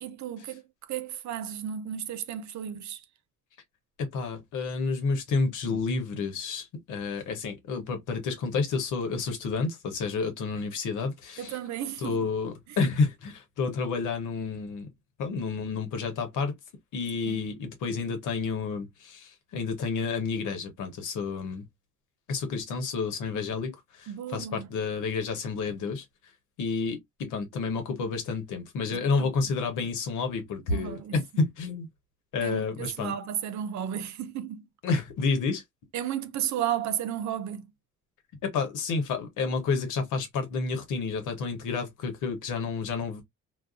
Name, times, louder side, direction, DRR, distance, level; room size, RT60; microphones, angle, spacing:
voice 1, 0.0-3.0 11.4-12.3 12.7-12.8 17.3-17.4 24.1-24.7 28.9-29.5 30.7-31.2 32.4-34.6 35.9-37.7, right 10 dB, 70° right, 0.6 m, -34 dB
voice 2, 4.0-11.6 12.0-14.9 15.2-16.5 16.9-21.7 22.3-26.0 26.6-31.9 32.3-33.1 34.8-35.6 38.4-43.2, left 4 dB, 85° left, 1.0 m, -30 dB
2.4 x 2.3 x 2.3 m
cardioid pair, 90°, 30 cm